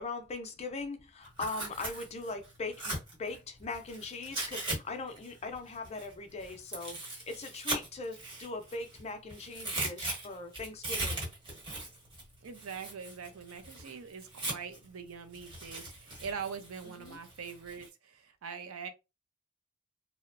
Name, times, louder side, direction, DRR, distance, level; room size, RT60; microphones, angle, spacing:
voice 1, 0.0-11.3 17.0-17.2, left 3 dB, 30° left, 0.4 m, -40 dB
Tearing, 1.2-4.8 5.1-9.0 9.3-14.8 15.3-17.9, right 2 dB, 25° right, 1.1 m, -39 dB
voice 2, 12.4-18.9, right 6 dB, 80° right, 0.5 m, -43 dB
2.8 x 2.1 x 2.5 m
head